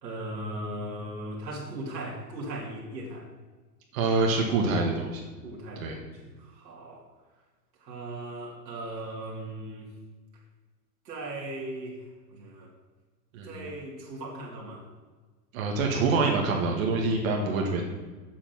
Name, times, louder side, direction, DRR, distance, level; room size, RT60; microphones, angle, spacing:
voice 1, 0.0-3.3 5.4-7.1 7.8-9.9 11.0-12.7 13.4-14.9, right 1 dB, 85° right, -3 dB, 2.9 m, -38 dB
voice 2, 3.9-5.2 5.8-6.0 13.3-13.7 15.5-17.8, right 3 dB, 55° right, 0 dB, 1.8 m, -26 dB
8.3 x 7.7 x 6.1 m, 1.3 s
hypercardioid pair, 145°, 50 cm